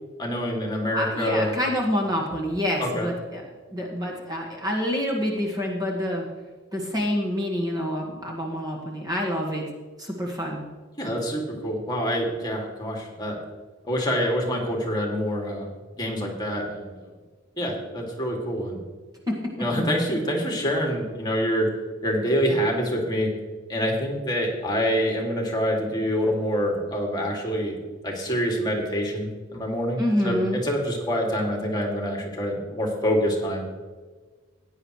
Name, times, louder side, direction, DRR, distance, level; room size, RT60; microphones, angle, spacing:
voice 1, 0.2-1.6 2.8-3.1 11.0-13.4 13.9-15.7 15.9-17.1 17.6-18.8 19.6-21.7 22.0-23.3 23.7-27.8 28.0-33.7, equal, 20° left, 0 dB, 2.4 m, -26 dB
voice 2, 0.9-3.4 3.7-6.2 6.7-9.7 10.0-10.6 19.3-19.5 30.0-30.6, equal, 20° right, -1 dB, 1.7 m, -27 dB
16.0 x 10.0 x 3.2 m, 1.4 s
head